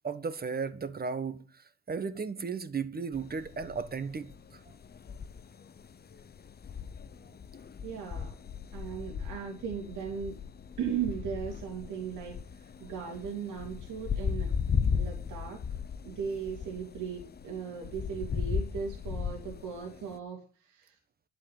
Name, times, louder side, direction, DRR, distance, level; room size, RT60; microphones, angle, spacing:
voice 1, 0.0-4.6, right 5 dB, 30° right, 1.4 m, -35 dB
sound 1, 3.1-20.2, left 6 dB, 35° left, 0.7 m, -36 dB
voice 2, 7.8-8.4 8.7-10.4 10.8-14.5 14.9-15.6 16.0-21.0, right 7 dB, 90° right, 2.8 m, -37 dB
11.0 x 7.8 x 7.6 m
cardioid pair, 90°, 30 cm